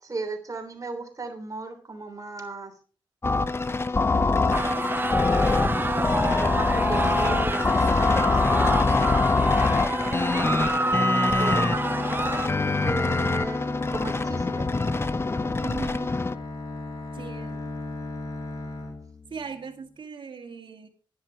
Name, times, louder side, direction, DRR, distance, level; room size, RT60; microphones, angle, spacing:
voice 1, 0.0-2.7 4.1-4.9 6.3-9.2 11.2-12.4 12.8-14.7, right 3 dB, 40° right, 5 dB, 3.2 m, -36 dB
sound 1, 3.2-16.3, left 3 dB, 25° left, 0.7 m, -24 dB
sound 2, 4.5-12.5, right 2 dB, 25° right, 0.7 m, -28 dB
Bowed string instrument, 11.4-19.6, left 2 dB, 45° left, 2.5 m, -36 dB
voice 2, 15.6-16.2 17.1-17.6 19.3-20.9, right 5 dB, 65° right, 4 dB, 2.1 m, -39 dB
11.0 x 10.0 x 4.7 m, 0.40 s
cardioid pair, 80°, 9 cm